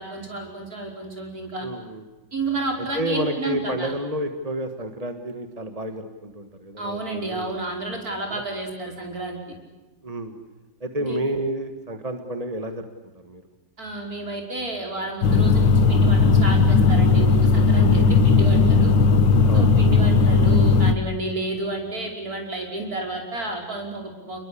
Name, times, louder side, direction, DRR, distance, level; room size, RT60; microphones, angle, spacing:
voice 1, 0.0-1.7 2.3-3.9 6.8-9.6 11.0-11.2 13.8-19.0 19.5-24.4, right 2 dB, 50° right, 1 dB, 5.8 m, -31 dB
voice 2, 1.6-2.0 2.9-7.5 8.3-8.4 10.0-10.4 10.8-12.9 13.2-13.4 17.7-18.0 19.4-19.9, right 1 dB, 20° right, 7 dB, 1.6 m, -30 dB
sound 1, 15.2-20.9, left 4 dB, 75° left, 1.9 m, -16 dB
29.0 x 22.0 x 8.6 m, 1.2 s
omnidirectional pair, 2.1 m